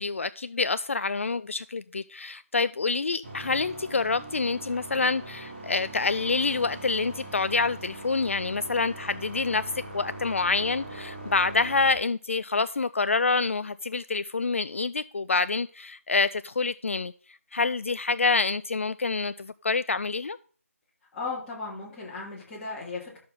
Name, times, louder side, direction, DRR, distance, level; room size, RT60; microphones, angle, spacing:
voice 1, 0.0-17.1 17.5-20.4, left 4 dB, 60° left, 0.4 m, -27 dB
sound 1, 3.2-11.9, right 1 dB, 40° right, 4.0 m, -41 dB
voice 2, 21.1-23.2, left 4 dB, 10° left, 3.2 m, -36 dB
12.0 x 6.8 x 3.9 m
figure-of-eight pair, 160°, 8 cm